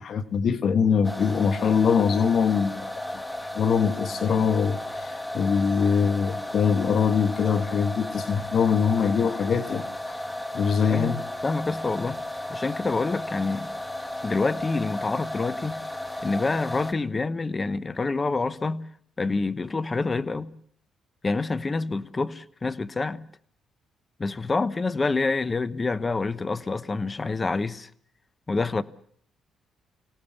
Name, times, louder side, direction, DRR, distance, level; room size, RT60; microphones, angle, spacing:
voice 1, 0.0-10.2 10.5-11.2, left 6 dB, 60° left, 1.4 m, -23 dB
sound 1, 1.0-16.9, left 1 dB, 10° left, 1.4 m, -34 dB
voice 2, 11.4-12.2 12.5-13.7 14.2-15.8 16.2-18.8 19.2-20.5 21.2-23.2 24.2-27.9 28.5-28.8, left 3 dB, 25° left, 1.0 m, -27 dB
25.0 x 17.5 x 7.1 m
cardioid pair, 90°, 0 cm